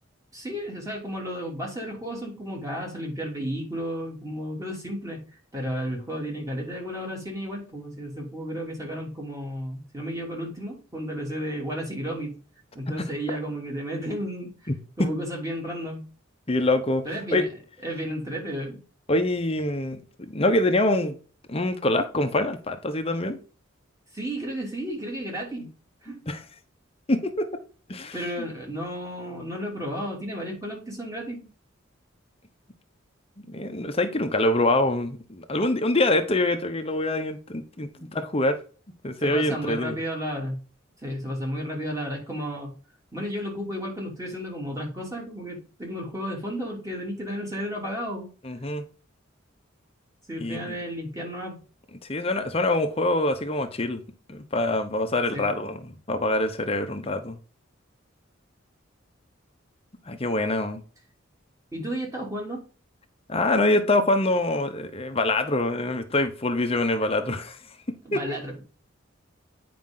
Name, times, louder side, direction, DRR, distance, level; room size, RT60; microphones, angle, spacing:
voice 1, 0.3-5.2 5.5-12.3 12.7-14.5 15.0-16.0 17.0-17.5 17.8-18.8 24.1-25.7 26.0-26.2 28.1-31.5 38.0-38.2 39.2-40.6 41.0-42.7 43.1-48.3 50.3-51.6 55.3-55.5 61.7-62.6 68.1-68.6, equal, 15° right, 3.0 m, -33 dB
voice 2, 16.5-17.0 17.3-17.4 19.1-21.1 21.5-23.4 26.3-26.4 27.1-27.5 27.9-28.1 33.5-38.6 39.0-40.0 48.4-48.8 50.4-50.8 52.1-54.0 54.3-57.4 60.1-60.8 63.3-67.6 67.9-68.4, left 2 dB, 30° left, 0.9 m, -25 dB
9.2 x 5.1 x 3.8 m
head